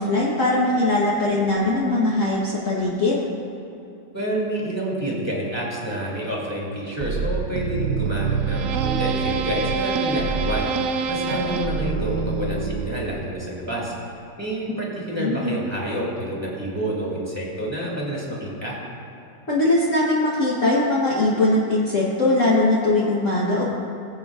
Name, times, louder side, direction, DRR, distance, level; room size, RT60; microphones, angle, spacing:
voice 1, 0.0-3.2 15.2-15.5 19.5-23.6, left 2 dB, 45° left, -6 dB, 1.4 m, -21 dB
voice 2, 4.1-13.9 14.4-18.8, equal, 10° right, -5 dB, 2.2 m, -28 dB
sound 1, 7.0-13.3, right 5 dB, 85° right, 0.7 m, -25 dB
20.5 x 7.9 x 2.4 m, 2.9 s
omnidirectional pair, 2.0 m